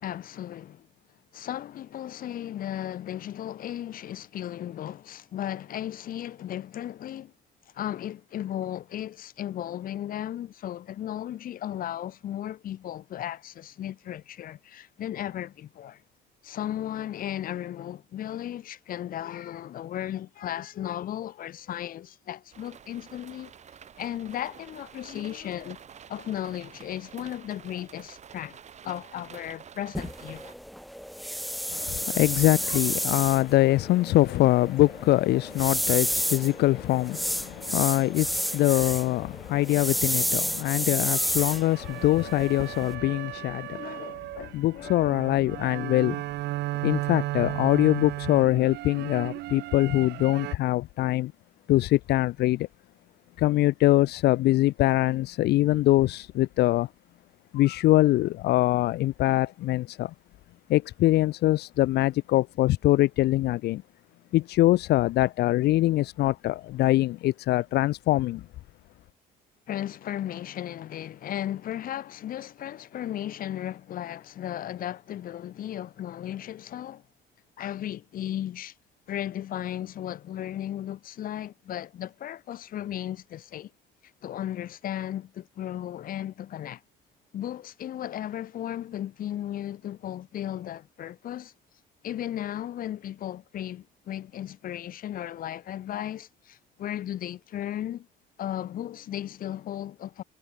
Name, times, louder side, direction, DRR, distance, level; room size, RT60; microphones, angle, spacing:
voice 1, 0.0-0.9 1.3-7.3 7.7-16.0 16.4-23.5 24.0-25.8 26.1-28.6 28.8-30.5 32.7-32.8 34.3-34.5 43.7-45.2 69.7-77.0 77.6-78.7 79.1-83.7 84.2-86.8 87.3-91.5 92.0-98.1 98.4-100.2, left 11 dB, 55° left, 1.4 m, -35 dB
sound 1, 22.5-30.6, right 8 dB, 45° right, 2.8 m, -49 dB
sound 2, 29.9-42.9, equal, ahead, 2.8 m, -31 dB
voice 2, 31.7-43.8 44.5-46.2 46.8-51.3 51.7-52.7 53.4-56.9 57.5-60.1 60.7-63.8 64.3-68.4, left 16 dB, 75° left, 1.1 m, -23 dB
sound 3, 41.0-50.5, right 17 dB, 80° right, 4.7 m, -35 dB
cardioid pair, 110°, 17 cm